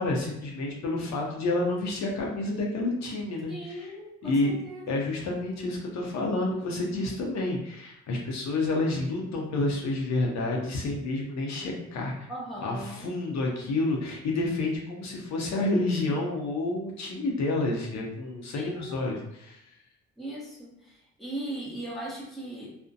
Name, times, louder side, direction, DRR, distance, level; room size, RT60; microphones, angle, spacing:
voice 1, 0.0-3.9 4.2-4.5 4.9-12.3 12.6-19.6, left 2 dB, 65° left, -1 dB, 0.6 m, -29 dB
voice 2, 3.5-5.0 12.3-13.1 15.6-16.2 18.5-18.9 20.2-22.7, right 1 dB, ahead, -5 dB, 0.8 m, -39 dB
2.4 x 2.1 x 2.5 m, 0.84 s
cardioid pair, 90°, 30 cm